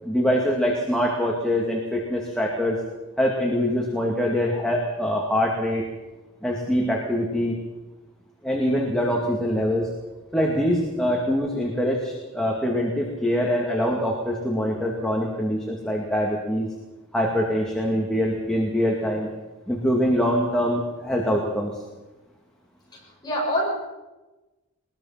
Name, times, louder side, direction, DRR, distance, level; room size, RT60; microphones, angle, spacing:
voice 1, 0.0-2.8 3.2-5.8 6.4-7.6 8.4-9.9 10.3-16.7 17.1-19.3 19.7-21.8, equal, 5° left, -2 dB, 2.4 m, -24 dB
voice 2, 22.9-23.7, equal, 20° left, -4 dB, 7.8 m, -26 dB
21.5 x 21.0 x 5.9 m, 1.1 s
head